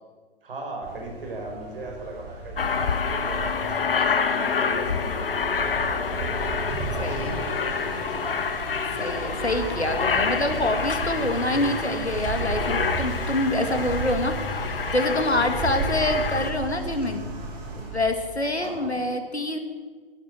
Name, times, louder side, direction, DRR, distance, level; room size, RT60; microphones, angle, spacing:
voice 1, 0.4-6.2 6.9-8.7 9.9-10.2 11.1-11.3 18.6-19.0, right 2 dB, 60° right, 1 dB, 4.8 m, -38 dB
sound 1, 0.8-19.0, right 3 dB, 25° right, 3.9 m, -34 dB
Aircraft, 2.6-16.5, left 6 dB, 60° left, 1.2 m, -28 dB
voice 2, 7.0-7.4 9.0-17.3 17.8-19.6, left 1 dB, 85° left, 6 dB, 2.1 m, -26 dB
12.0 x 11.0 x 7.8 m, 1.5 s
figure-of-eight pair, 125°, 32 cm